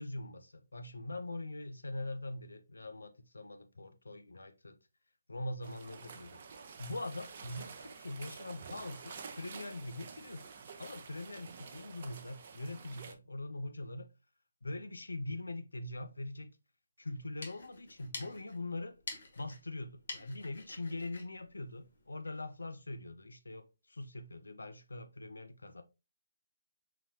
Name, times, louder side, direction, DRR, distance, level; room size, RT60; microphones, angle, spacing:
voice 1, 0.0-4.8 5.3-6.4 6.8-10.4 10.8-14.1 14.6-16.5 17.0-19.0 19.4-25.8, left 2 dB, 75° left, 0.5 m, -42 dB
sound 1, 5.6-13.1, right 5 dB, 40° right, 0.5 m, -49 dB
sound 2, 17.1-22.4, left 3 dB, 60° left, 1.2 m, -49 dB
4.0 x 2.9 x 2.8 m
figure-of-eight pair, 140°, 0 cm